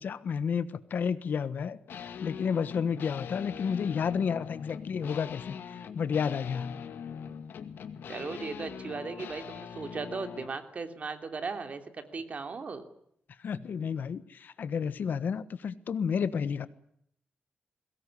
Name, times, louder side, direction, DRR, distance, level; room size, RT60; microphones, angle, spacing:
voice 1, 0.0-6.8 13.4-16.7, left 6 dB, 65° left, 14 dB, 1.3 m, -31 dB
sound 1, 1.9-10.6, left 7 dB, 85° left, 2.2 m, -42 dB
voice 2, 8.1-12.8, right 4 dB, 45° right, 7 dB, 2.9 m, -37 dB
22.5 x 18.5 x 9.9 m, 0.71 s
wide cardioid pair, 125°, 3 cm